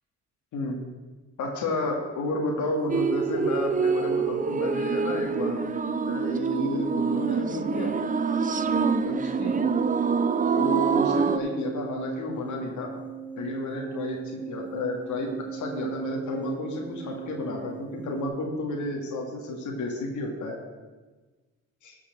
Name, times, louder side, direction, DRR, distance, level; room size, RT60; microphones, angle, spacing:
voice 1, 1.4-5.6 6.1-8.0 9.0-9.6 10.5-12.9 13.4-20.6 21.8-22.0, left 2 dB, 75° left, 1 dB, 2.0 m, -31 dB
sound 1, 2.9-11.4, right 5 dB, 25° right, 0.6 m, -25 dB
sound 2, 3.5-3.6 3.9-18.3, right 6 dB, 5° left, 2.2 m, -40 dB
13.5 x 5.0 x 6.5 m, 1.3 s
cardioid pair, 90°, 30 cm